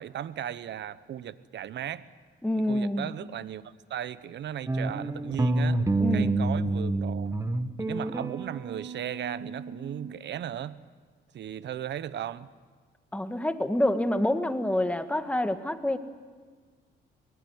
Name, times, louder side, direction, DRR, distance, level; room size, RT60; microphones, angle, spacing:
voice 1, 0.0-2.1 2.6-3.6 3.9-5.8 6.1-7.3 7.8-10.8 11.3-12.5, right 10 dB, 60° right, 16 dB, 0.9 m, -36 dB
voice 2, 2.4-3.1 6.0-6.4 13.1-16.0, left 1 dB, 5° left, 8 dB, 1.6 m, -27 dB
sound 1, 4.7-10.1, right 2 dB, 15° right, 1.2 m, -29 dB
23.5 x 20.0 x 9.5 m, 1.5 s
cardioid pair, 90°, 20 cm